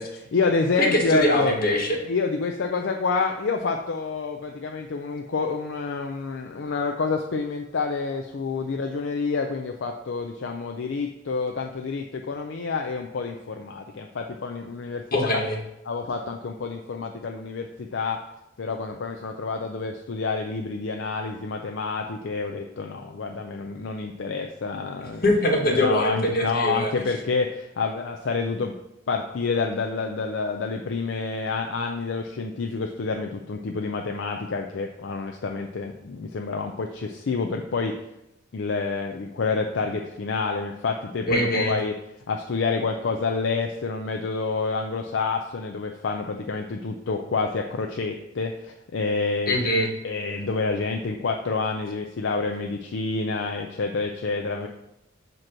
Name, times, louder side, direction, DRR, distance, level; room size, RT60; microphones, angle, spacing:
voice 1, 0.0-1.5 2.0-15.0 15.8-18.2 18.6-25.2 25.7-28.8 29.1-37.9 38.5-41.9 42.3-49.7 50.0-54.7, left 4 dB, 70° left, 3 dB, 0.5 m, -28 dB
voice 2, 0.8-2.0 15.1-15.6 25.2-26.9 41.3-41.7 49.5-49.9, left 1 dB, 50° left, 1 dB, 1.3 m, -22 dB
7.7 x 3.0 x 6.0 m, 0.88 s
head